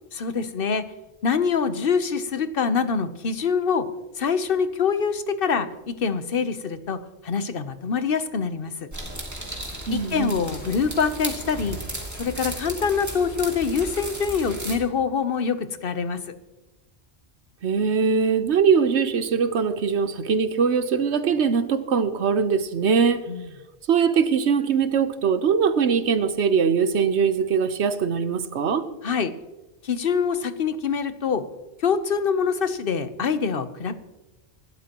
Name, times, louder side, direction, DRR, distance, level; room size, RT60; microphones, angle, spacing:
voice 1, 0.1-0.8 1.2-3.9 4.1-8.7 9.9-11.8 12.2-16.2 23.3-23.5 29.0-29.3 29.8-31.4 31.8-33.9, left 6 dB, 60° left, 11 dB, 1.1 m, -25 dB
sound 1, 8.9-14.8, right 1 dB, 15° right, 2.7 m, -35 dB
voice 2, 9.9-10.4 17.6-23.2 23.9-28.8, right 6 dB, 85° right, 11 dB, 1.2 m, -22 dB
25.5 x 12.5 x 3.0 m, 1.1 s
omnidirectional pair, 1.1 m